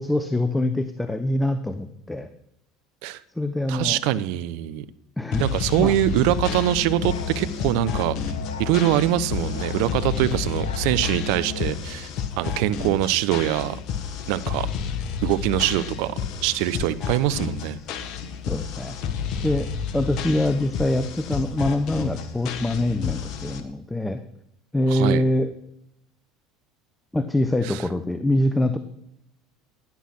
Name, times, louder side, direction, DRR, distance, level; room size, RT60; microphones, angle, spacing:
voice 1, 0.0-2.3 3.4-4.0 5.2-5.5 5.8-5.9 18.5-19.0 19.4-24.2 24.7-25.5 27.1-28.8, left 1 dB, 10° left, 10 dB, 1.0 m, -24 dB
voice 2, 3.7-4.9 5.4-8.1 8.6-12.1 12.4-13.8 14.3-14.7 15.2-16.1 16.4-17.8 24.9-25.2 27.6-27.8, right 13 dB, 65° right, 14 dB, 0.8 m, -23 dB
sound 1, 5.3-23.6, left 7 dB, 55° left, 1.6 m, -31 dB
Musical instrument, 6.1-11.8, left 6 dB, 80° left, 2.4 m, -33 dB
15.5 x 10.5 x 6.1 m, 0.78 s
hypercardioid pair, 75°, 0 cm